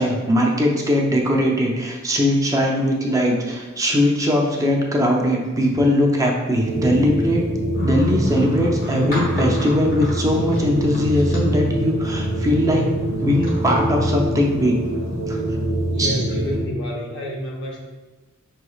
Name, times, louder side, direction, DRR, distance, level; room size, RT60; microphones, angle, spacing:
voice 1, 0.0-7.4 7.7-12.9 13.2-14.8 15.3-15.4 16.0-16.2, left 1 dB, 15° right, 0 dB, 0.5 m, -20 dB
sound 1, 6.5-16.7, right 1 dB, 75° right, 1.1 m, -24 dB
sound 2, 7.7-15.6, equal, 40° left, 1.1 m, -38 dB
voice 2, 15.9-17.8, equal, 60° left, -1 dB, 0.8 m, -29 dB
5.6 x 3.1 x 2.3 m, 1.2 s
head